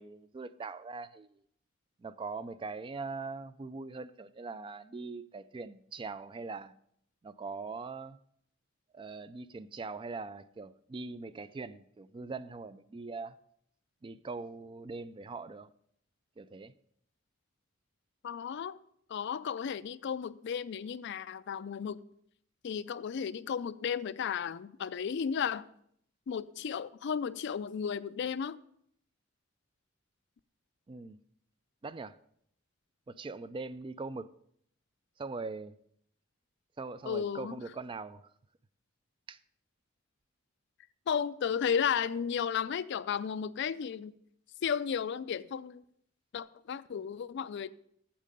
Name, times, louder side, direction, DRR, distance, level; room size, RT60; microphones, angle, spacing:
voice 1, 0.0-1.4 2.0-6.7 7.2-8.2 8.9-13.4 14.0-15.7 16.4-16.7 30.9-31.2 31.8-32.2 33.1-34.3 35.2-35.8 36.8-38.3 39.3-39.4, right 4 dB, 25° right, 0.3 m, -41 dB
voice 2, 18.2-18.8 19.1-22.0 22.6-25.7 26.3-28.6 37.0-37.6 41.1-44.1 44.6-45.8 46.3-47.7, left 7 dB, 55° left, 0.4 m, -34 dB
8.6 x 7.4 x 5.3 m
head